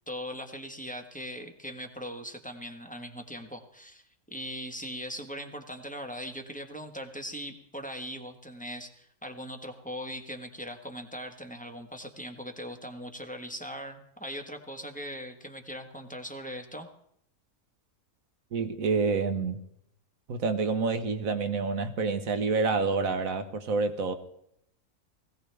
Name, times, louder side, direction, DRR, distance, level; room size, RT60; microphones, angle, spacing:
voice 1, 0.1-16.9, equal, 5° left, 4 dB, 1.3 m, -40 dB
voice 2, 18.5-19.6 20.3-24.2, right 4 dB, 65° right, 8 dB, 1.6 m, -28 dB
20.0 x 16.5 x 3.5 m, 0.74 s
omnidirectional pair, 1.5 m